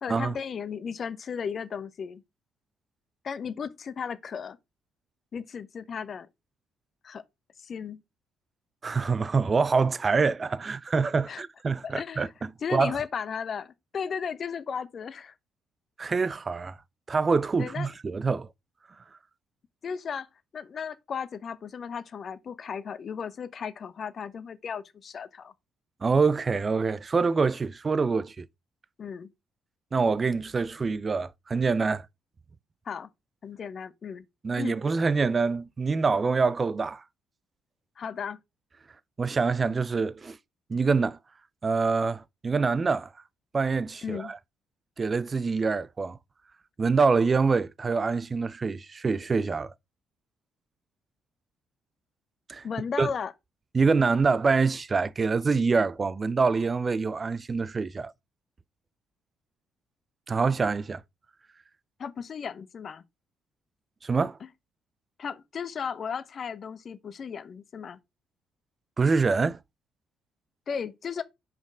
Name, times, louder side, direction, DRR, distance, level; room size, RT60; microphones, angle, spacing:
voice 1, 0.0-2.2 3.2-4.6 5.3-6.3 7.0-7.2 7.6-8.0 11.3-11.4 11.8-12.3 12.6-15.3 17.6-17.9 19.8-20.3 20.5-25.5 29.0-29.3 32.9-33.1 33.4-34.2 34.6-34.8 38.0-38.4 44.0-44.3 52.6-53.3 62.0-63.0 64.4-64.5 65.2-68.0 70.7-71.2, left 6 dB, 45° left, 0.7 m, -35 dB
voice 2, 8.8-12.3 12.7-13.0 16.0-16.8 17.1-18.5 26.0-28.5 29.9-32.1 34.4-37.0 39.2-40.4 40.7-41.2 41.6-43.1 43.5-44.4 45.0-46.2 46.8-49.7 52.5-52.6 53.0-53.1 53.7-58.1 60.3-61.0 64.0-64.4 69.0-69.6, right 4 dB, 35° right, 0.5 m, -25 dB
6.1 x 5.2 x 4.9 m
figure-of-eight pair, 45°, 0 cm